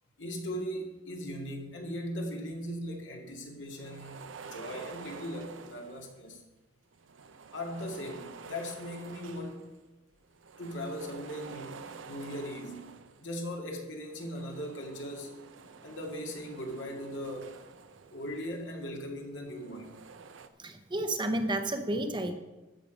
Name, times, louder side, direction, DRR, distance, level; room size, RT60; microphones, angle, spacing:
voice 1, 0.2-6.4 7.5-9.7 10.6-15.4 15.8-17.6 18.1-19.9, equal, 70° left, 1 dB, 2.1 m, -39 dB
sound 1, 3.7-6.3 6.9-9.8 10.2-13.4 14.0-18.8 19.4-20.5, right 5 dB, 80° right, 0.7 m, -49 dB
voice 2, 20.6-22.3, right 1 dB, 25° right, 7 dB, 0.8 m, -31 dB
14.0 x 6.4 x 5.3 m, 1.1 s
head